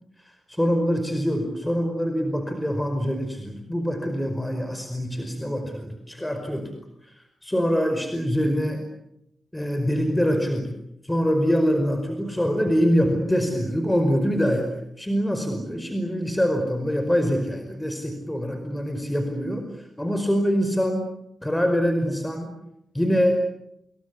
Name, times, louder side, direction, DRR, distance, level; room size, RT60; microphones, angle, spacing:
voice 1, 0.2-6.8 7.0-8.8 9.5-21.1 21.4-22.5 22.9-23.4, equal, 10° left, 6 dB, 5.0 m, -24 dB
28.5 x 21.5 x 8.4 m, 0.80 s
cardioid pair, 50°, 0 cm